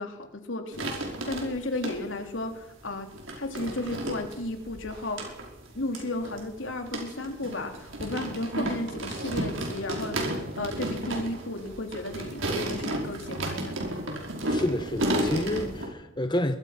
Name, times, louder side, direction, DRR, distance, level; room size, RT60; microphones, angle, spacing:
voice 1, 0.0-3.1 3.3-5.4 5.8-13.8, left 2 dB, 70° left, 3.5 m, -34 dB
sound 1, 0.7-2.2 2.9-15.9, right 1 dB, 75° right, 5.5 m, -33 dB
voice 2, 14.4-16.6, left 1 dB, 20° left, 1.0 m, -29 dB
23.5 x 20.0 x 6.0 m
head